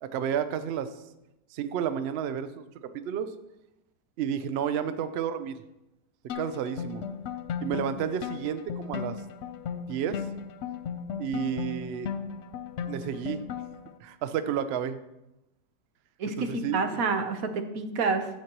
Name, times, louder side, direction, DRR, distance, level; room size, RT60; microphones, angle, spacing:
voice 1, 0.0-0.9 1.5-2.6 2.9-3.3 4.2-5.6 6.3-7.0 7.6-9.2 9.9-10.3 11.2-12.1 12.8-13.4 14.0-15.0 16.4-17.0, right 8 dB, 90° right, 11 dB, 0.5 m, -31 dB
sound 1, 6.3-13.9, left 7 dB, 75° left, 0.6 m, -36 dB
voice 2, 16.2-18.3, right 4 dB, 65° right, 7 dB, 1.2 m, -28 dB
10.0 x 7.9 x 3.0 m, 0.91 s
omnidirectional pair, 1.7 m